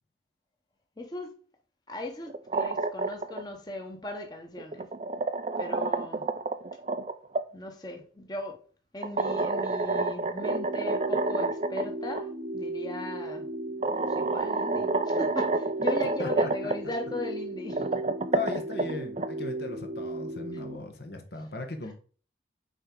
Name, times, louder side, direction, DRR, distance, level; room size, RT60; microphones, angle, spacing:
voice 1, 1.0-1.3 1.9-4.9 5.6-6.3 7.5-8.6 8.9-13.5 14.0-18.0 20.5-20.6, left 1 dB, 20° left, 1.0 m, -38 dB
sound 1, 2.3-3.4 4.6-7.4 9.0-11.8 12.1-12.2 13.3-13.4 13.8-16.7 17.6-19.3, right 3 dB, 35° right, 0.4 m, -29 dB
sound 2, 10.4-20.8, right 1 dB, 60° right, 1.1 m, -36 dB
voice 2, 16.2-16.7 18.3-21.9, left 3 dB, 65° left, 1.1 m, -37 dB
6.4 x 4.4 x 3.8 m
head